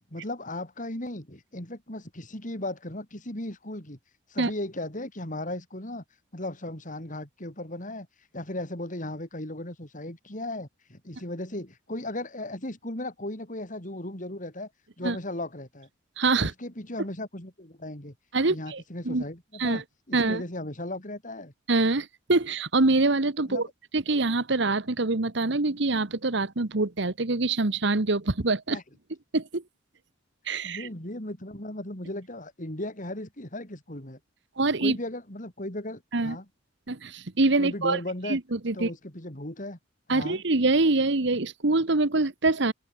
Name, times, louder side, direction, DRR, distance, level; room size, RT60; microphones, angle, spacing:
voice 1, 0.1-4.0 4.3-6.0 6.3-8.1 8.3-14.7 15.0-15.9 16.4-18.1 18.5-21.5 23.5-23.7 28.7-28.8 30.6-34.2 34.8-36.4 37.6-38.4 38.7-39.8 40.1-40.4, left 1 dB, 45° left, 4.9 m, -36 dB
voice 2, 16.2-16.5 18.3-19.2 19.6-19.8 20.1-20.4 21.7-23.7 23.9-28.8 29.3-29.6 30.5-30.9 34.6-35.0 36.1-36.4 36.9-38.0 38.2-38.9 40.1-42.7, right 3 dB, 65° right, 1.3 m, -25 dB
open air
head